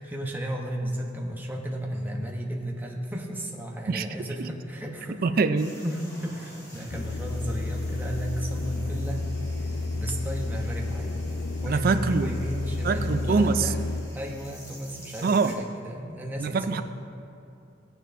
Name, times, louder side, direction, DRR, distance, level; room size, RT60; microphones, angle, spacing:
voice 1, 0.0-5.4 5.8-9.3 9.9-11.3 11.6-13.8 14.1-16.8, equal, 10° right, -1 dB, 0.8 m, -34 dB
voice 2, 5.2-5.7 11.7-12.4 12.8-13.7 15.2-15.6 16.4-16.8, right 4 dB, 50° right, 10 dB, 0.4 m, -24 dB
sound 1, 5.6-15.5, equal, 15° left, 1.7 m, -50 dB
sound 2, 6.9-14.0, left 2 dB, 70° left, 0.6 m, -31 dB
15.5 x 9.0 x 2.6 m, 2.6 s
head